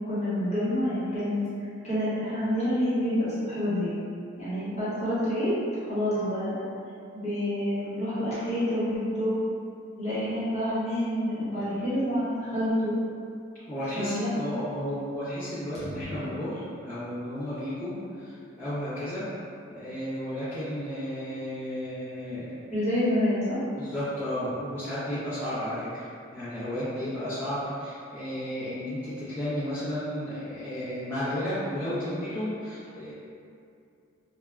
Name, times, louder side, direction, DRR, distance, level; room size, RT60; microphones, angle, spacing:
voice 1, 0.1-1.4 1.8-3.9 4.4-6.6 7.1-9.4 10.0-12.9 13.9-14.3 15.7-16.0 22.7-23.6, equal, 35° left, -12 dB, 1.0 m, -28 dB
voice 2, 13.7-19.2 19.7-22.5 23.8-26.0 26.3-33.1, equal, 10° left, -16 dB, 0.8 m, -33 dB
3.3 x 2.2 x 2.3 m, 2.5 s
head